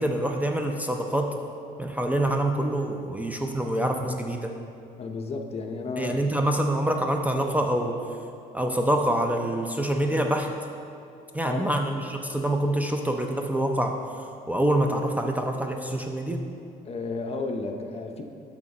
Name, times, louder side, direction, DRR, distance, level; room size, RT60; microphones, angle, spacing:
voice 1, 0.0-1.3 1.8-4.5 6.0-8.0 8.5-10.5 11.3-14.0 14.5-16.4, right 1 dB, 10° right, 3 dB, 0.5 m, -26 dB
voice 2, 5.0-6.2 11.4-11.7 16.8-18.2, left 3 dB, 35° left, 4 dB, 0.7 m, -33 dB
7.4 x 6.2 x 4.4 m, 2.6 s
cardioid pair, 110°, 17 cm